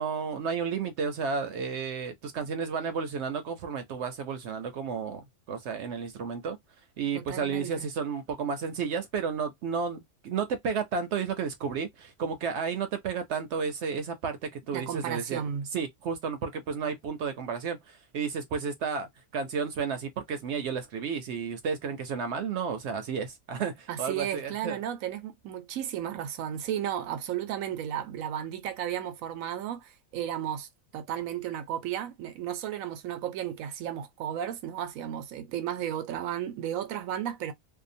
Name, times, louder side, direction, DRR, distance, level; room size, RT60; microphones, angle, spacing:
voice 1, 0.0-6.6 7.0-15.4 15.7-24.8, right 6 dB, 65° right, 0.8 m, -32 dB
voice 2, 7.1-7.9 14.7-15.7 23.9-30.7 30.9-37.5, right 10 dB, 90° right, 1.0 m, -34 dB
2.7 x 2.2 x 2.6 m
omnidirectional pair, 1.4 m